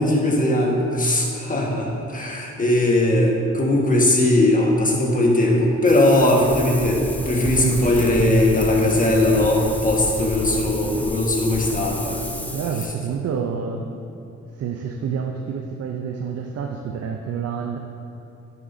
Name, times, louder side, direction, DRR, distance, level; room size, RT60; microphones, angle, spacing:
voice 1, 0.0-12.4, left 1 dB, 25° left, -1 dB, 1.5 m, -19 dB
Wind, 5.9-12.9, left 1 dB, 5° left, 0.6 m, -31 dB
voice 2, 12.5-13.9 14.5-17.8, right 6 dB, 55° right, 2 dB, 0.6 m, -28 dB
10.5 x 6.9 x 2.7 m, 2.8 s
cardioid pair, 90°, 30 cm